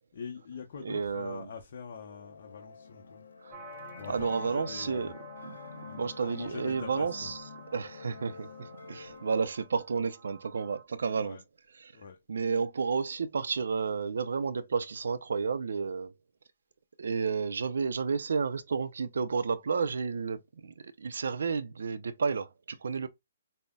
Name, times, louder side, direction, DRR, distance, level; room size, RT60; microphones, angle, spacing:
voice 1, 0.1-3.2 4.0-5.1 5.8-7.3 8.3-8.5 11.2-11.4 11.9-12.2, left 6 dB, 50° left, 0.7 m, -43 dB
voice 2, 0.8-1.5 3.4-3.7 4.1-5.1 5.4-5.6 6.0-7.4 7.7-11.4 11.7-11.9 12.3-16.1 17.0-23.1, right 5 dB, 75° right, 0.4 m, -31 dB
sound 1, 1.9-9.5, left 5 dB, 85° left, 0.8 m, -48 dB
sound 2, 3.5-10.8, right 2 dB, 15° right, 1.0 m, -50 dB
5.2 x 2.1 x 2.2 m
hypercardioid pair, 165°, 0 cm